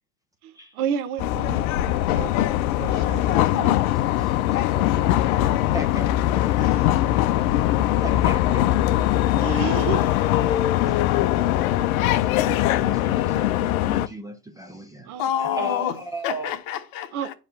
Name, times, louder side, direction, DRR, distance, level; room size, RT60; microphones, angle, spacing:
voice 1, 0.4-1.6 2.1-3.8 6.6-7.0 7.7-7.8 8.7-8.8 9.4-10.3 12.4-12.6 15.1-15.3 15.6-15.9 17.1-17.3, right 8 dB, 60° right, 1.0 m, -32 dB
sound 1, 1.2-14.1, left 13 dB, 60° left, 0.6 m, -21 dB
voice 2, 3.9-6.6 8.0-8.7 11.9-12.5 12.8-15.1 15.6-16.5, right 2 dB, 10° right, 0.5 m, -37 dB
voice 3, 10.9-11.8 15.2-17.3, left 10 dB, 45° left, 1.3 m, -29 dB
9.1 x 3.2 x 5.6 m
hypercardioid pair, 120°, 49 cm